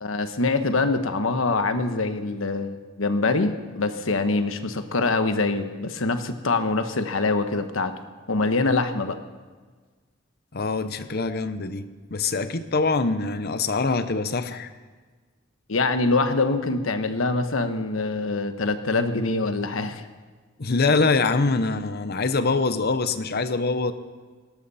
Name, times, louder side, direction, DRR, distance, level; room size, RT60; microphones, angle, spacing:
voice 1, 0.0-7.9 8.3-9.2 15.7-20.1, left 3 dB, 80° left, 8 dB, 1.2 m, -24 dB
voice 2, 10.5-11.9 12.1-14.7 20.6-23.9, left 3 dB, 50° left, 11 dB, 0.9 m, -24 dB
18.5 x 18.0 x 4.2 m, 1.5 s
head